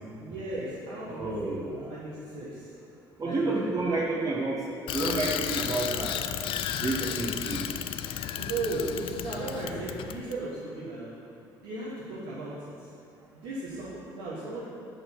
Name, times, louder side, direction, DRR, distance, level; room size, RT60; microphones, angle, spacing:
voice 1, 0.2-2.7 3.2-3.4 3.8-3.9 8.4-11.2 11.6-12.9 13.4-14.7, right 2 dB, 75° right, -8 dB, 1.3 m, -36 dB
voice 2, 1.1-1.9 3.2-4.7 4.9-6.2 6.8-7.8, right 2 dB, 35° right, -5 dB, 1.2 m, -30 dB
Bicycle, 4.9-10.4, left 10 dB, 65° left, 0.4 m, -33 dB
6.5 x 4.7 x 6.1 m, 2.6 s
hypercardioid pair, 65°, 10 cm